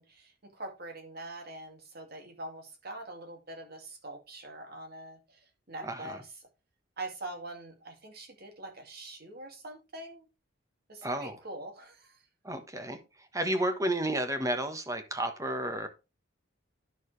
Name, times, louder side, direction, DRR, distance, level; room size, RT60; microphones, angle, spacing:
voice 1, 0.0-6.3 7.0-10.3 10.9-12.2, right 2 dB, 50° right, 2.4 m, -44 dB
voice 2, 5.8-6.2 11.0-11.4 12.4-15.9, right 1 dB, 15° right, 1.3 m, -32 dB
11.0 x 6.4 x 3.3 m
head